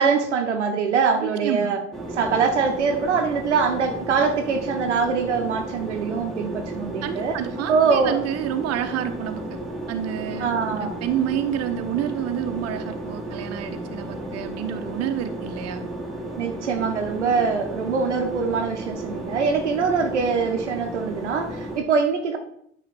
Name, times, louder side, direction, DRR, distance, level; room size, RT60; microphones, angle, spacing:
voice 1, 0.0-1.8 2.1-7.4 7.7-8.2 10.4-10.9 16.4-22.4, right 5 dB, 85° right, 5 dB, 0.9 m, -23 dB
voice 2, 1.2-1.7 7.0-9.4 9.9-15.9, right 10 dB, 45° right, 7 dB, 0.9 m, -29 dB
sound 1, 1.9-21.8, right 1 dB, ahead, 1.6 m, -34 dB
9.3 x 3.2 x 6.1 m, 0.71 s
figure-of-eight pair, 60°, 34 cm